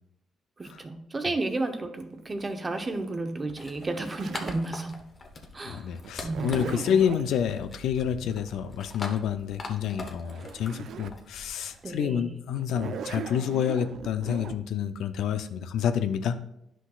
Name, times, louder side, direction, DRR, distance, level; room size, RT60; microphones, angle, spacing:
voice 1, 0.6-5.0 5.5-5.9 6.2-7.0 11.8-12.3, right 2 dB, 25° right, 6 dB, 0.8 m, -32 dB
Zipper (clothing), 2.0-4.7 6.0-7.3 9.9-10.0 10.2-11.2 11.7-11.8 12.6-14.6, right 7 dB, 70° right, 0.4 m, -39 dB
sound 1, 3.5-11.9, left 2 dB, 40° left, 0.9 m, -43 dB
voice 2, 5.7-16.4, left 8 dB, 80° left, 10 dB, 0.4 m, -28 dB
10.0 x 6.0 x 2.4 m, 0.80 s
cardioid pair, 90°, 0 cm